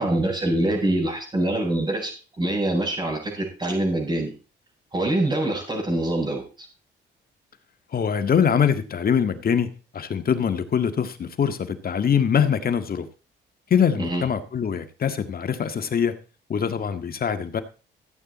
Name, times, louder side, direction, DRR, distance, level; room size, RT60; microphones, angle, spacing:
voice 1, 0.0-2.1 2.4-4.3 4.9-6.7 14.0-14.2, right 1 dB, 25° right, -7 dB, 7.4 m, -24 dB
voice 2, 7.9-13.1 13.7-16.2 16.5-17.6, left 7 dB, 50° left, 9 dB, 1.7 m, -23 dB
15.0 x 9.2 x 4.2 m, 0.35 s
cardioid pair, 90°, 20 cm